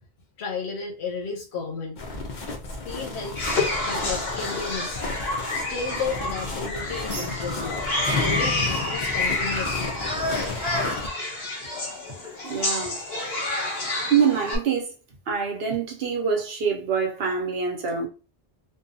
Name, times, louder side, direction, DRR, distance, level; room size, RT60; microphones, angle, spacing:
voice 1, 0.4-2.0 2.8-5.0 5.5-7.8 8.1-9.9, left 4 dB, 85° left, 0.9 m, -33 dB
sound 1, 2.0-11.1, left 3 dB, 55° left, 0.7 m, -34 dB
sound 2, 3.4-14.6, left 2 dB, 70° left, 1.2 m, -29 dB
sound 3, 7.0-10.1, left 4 dB, 20° right, 1.0 m, -33 dB
voice 2, 12.4-13.0 14.1-14.9 15.3-18.1, right 6 dB, 70° right, 0.9 m, -25 dB
2.6 x 2.2 x 2.6 m
omnidirectional pair, 1.1 m